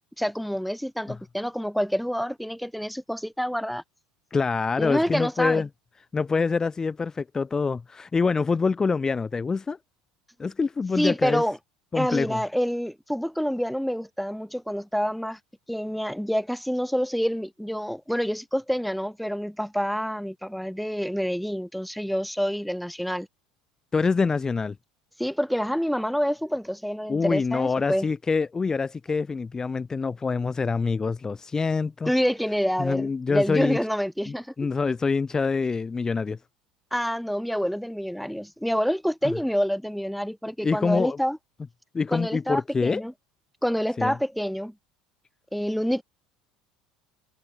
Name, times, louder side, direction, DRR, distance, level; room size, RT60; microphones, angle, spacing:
voice 1, 0.2-3.8 4.8-5.6 11.0-11.6 11.9-15.4 15.7-23.3 25.2-28.1 32.1-34.5 36.9-41.4 42.1-43.1 43.6-44.7 45.5-46.0, equal, ahead, 5.5 m, -27 dB
voice 2, 4.3-5.7 6.1-9.8 10.4-11.4 11.9-12.4 23.9-24.8 27.1-32.1 32.8-33.8 34.3-36.4 40.6-41.2 41.9-43.0 44.0-44.2, left 4 dB, 20° left, 4.0 m, -25 dB
figure-of-eight pair, 70°, 3 cm